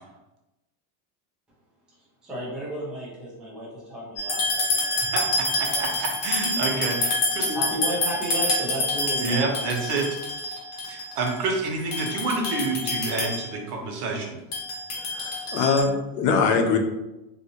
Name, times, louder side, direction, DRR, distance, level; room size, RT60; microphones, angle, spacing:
voice 1, 2.2-5.1 5.5-5.9 7.5-9.5, equal, ahead, -8 dB, 0.3 m, -33 dB
sound 1, 4.2-11.4 11.9-13.5 14.5-15.8, left 2 dB, 45° left, 1.2 m, -27 dB
voice 2, 5.0-5.5 5.8-7.6 9.2-10.2 10.9-14.4, right 3 dB, 75° right, 1 dB, 1.0 m, -28 dB
voice 3, 15.1-16.8, left 5 dB, 70° left, 4 dB, 0.7 m, -22 dB
3.4 x 2.7 x 2.8 m, 0.97 s
cardioid pair, 160°, 47 cm